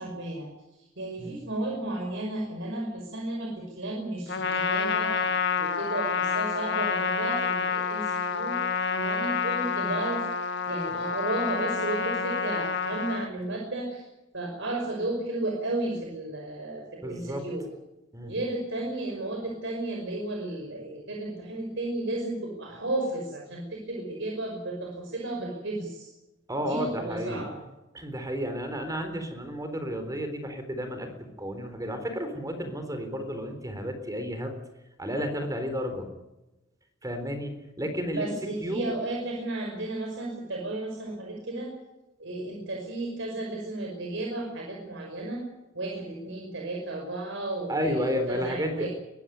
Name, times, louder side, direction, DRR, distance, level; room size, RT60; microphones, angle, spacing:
voice 1, 0.0-5.2 5.6-8.6 8.9-10.3 10.7-14.1 14.3-17.6 18.2-26.1 26.7-27.6 38.1-41.7 42.2-45.4 45.7-48.9, right 2 dB, 65° right, 0 dB, 5.6 m, -33 dB
Trumpet, 4.3-13.3, left 5 dB, 60° left, 1.5 m, -28 dB
voice 2, 17.0-17.4 18.1-18.3 26.5-27.4 27.9-34.6 35.0-36.1 37.0-38.3 38.6-38.9 47.7-48.9, equal, 15° right, 7 dB, 3.9 m, -32 dB
22.5 x 16.0 x 9.4 m, 0.98 s
head